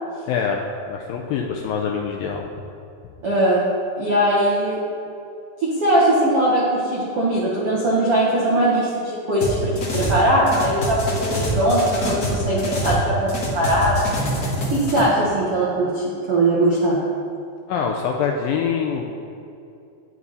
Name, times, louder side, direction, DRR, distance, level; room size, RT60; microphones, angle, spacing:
voice 1, 0.3-0.6 0.9-2.5 17.7-19.1, left 6 dB, 85° left, 1 dB, 2.1 m, -24 dB
voice 2, 3.2-3.6 4.0-4.8 5.6-14.0 14.7-17.0, right 1 dB, 65° right, -7 dB, 1.4 m, -20 dB
sound 1, 9.4-10.2 10.5-13.0 13.3-15.0, equal, 45° left, 1.2 m, -25 dB
9.9 x 9.3 x 4.1 m, 2.6 s
omnidirectional pair, 4.7 m